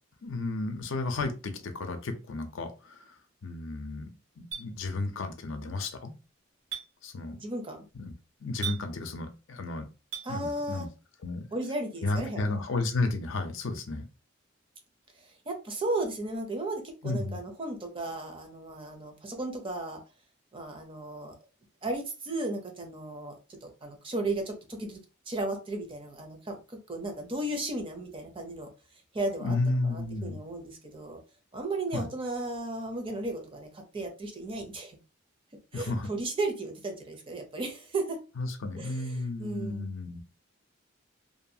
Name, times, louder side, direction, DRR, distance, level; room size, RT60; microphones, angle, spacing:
voice 1, 0.2-3.2 3.4-4.1 4.4-6.1 7.0-7.4 7.9-8.1 8.4-9.9 10.3-10.9 11.2-11.4 12.0-14.0 17.0-17.4 29.4-30.4 31.9-32.1 35.7-36.1 38.4-40.2, left 2 dB, 70° left, 0.5 m, -32 dB
Chink clink, 4.5-4.7 6.7-6.9 8.6-8.8 10.1-10.3, right 8 dB, 65° right, 1.1 m, -35 dB
voice 2, 7.3-7.8 10.2-10.9 11.5-12.6 15.2-20.0 20.5-21.3 21.8-25.0 25.3-28.7 29.1-31.2 31.5-35.0 35.7-38.2 38.8-39.8, right 2 dB, 25° right, 0.5 m, -35 dB
2.6 x 2.3 x 2.7 m
head